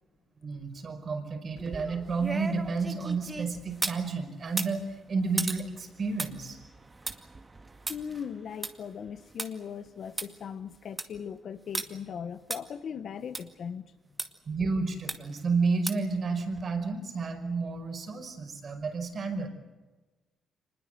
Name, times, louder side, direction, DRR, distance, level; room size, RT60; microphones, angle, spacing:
voice 1, 0.4-6.6 14.5-19.5, right 4 dB, 45° right, 5.4 m, -31 dB
sound 1, 1.6-4.0 4.5-9.5 9.9-10.0 10.2-10.3 10.7-11.2 11.7-11.9 12.5-12.6 13.3-13.4 14.2-14.3 15.1-15.4 15.9-16.1 16.6-16.7, right 3 dB, 25° right, 2.1 m, -36 dB
voice 2, 7.9-13.8, left 7 dB, 60° left, 1.3 m, -39 dB
25.0 x 20.5 x 8.0 m
cardioid pair, 90°, 0 cm